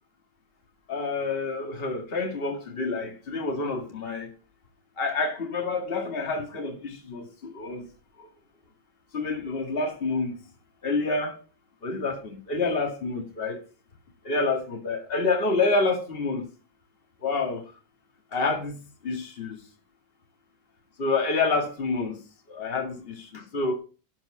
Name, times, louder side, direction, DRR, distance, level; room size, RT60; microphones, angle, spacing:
voice 1, 0.9-4.3 5.0-7.9 9.1-10.3 10.8-11.4 11.8-13.6 14.3-16.5 17.2-17.6 18.3-18.8 19.0-19.6 21.0-22.2 22.5-23.7, left 3 dB, 30° left, 2.2 m, -28 dB
12.5 x 4.7 x 7.6 m
omnidirectional pair, 2.1 m